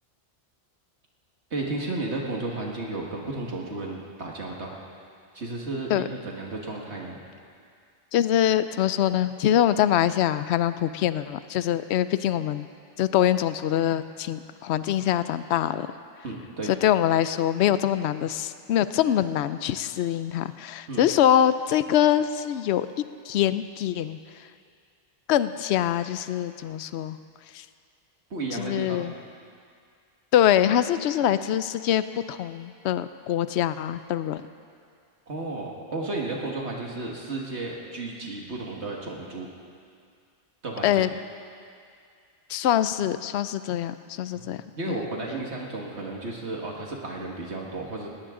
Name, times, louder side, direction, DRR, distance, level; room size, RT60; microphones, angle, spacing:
voice 1, 1.5-4.8 5.3-7.2 16.2-16.7 20.9-21.0 28.3-29.0 35.3-39.5 40.6-40.9 44.3-48.1, right 2 dB, 70° right, -1 dB, 2.0 m, -33 dB
voice 2, 8.1-12.7 13.0-15.9 16.6-24.5 25.3-27.2 27.5-27.7 28.5-29.1 30.3-34.4 40.8-41.1 42.5-44.6 44.9-45.0, left 11 dB, 70° left, 13 dB, 0.8 m, -24 dB
19.0 x 18.5 x 3.8 m, 2.3 s
omnidirectional pair, 1.2 m